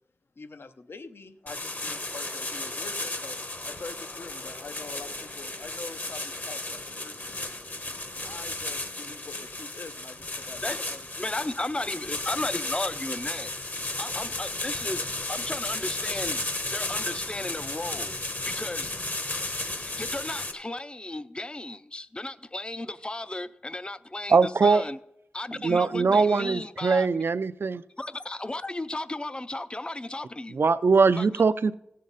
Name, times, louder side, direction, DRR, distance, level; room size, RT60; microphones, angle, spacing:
voice 1, 0.4-3.3 3.6-7.5 8.2-11.0, left 3 dB, 70° left, 0.7 m, -44 dB
sound 1, 1.5-20.5, left 2 dB, 45° left, 1.1 m, -34 dB
voice 2, 11.2-13.5 14.0-16.4 16.7-18.2 18.4-18.9 19.7-25.0 25.3-27.1 28.0-30.6 31.2-31.3, left 2 dB, 25° left, 0.5 m, -34 dB
voice 3, 24.3-24.8 25.6-27.8 30.5-31.7, right 4 dB, 65° right, 0.4 m, -21 dB
17.0 x 7.6 x 4.0 m
wide cardioid pair, 60°, 4 cm